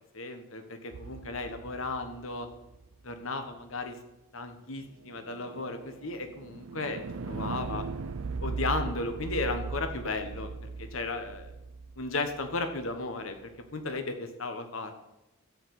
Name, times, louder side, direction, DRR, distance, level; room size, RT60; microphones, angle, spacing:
voice 1, 0.1-2.5 3.0-4.0 4.3-7.8 8.4-10.5 10.8-11.5 12.0-13.4 13.7-14.9, left 3 dB, 75° left, 7 dB, 1.4 m, -35 dB
sound 1, 0.9-3.1 4.9-13.0, right 4 dB, 85° right, 0.5 m, -39 dB
13.5 x 4.9 x 8.2 m, 0.92 s
head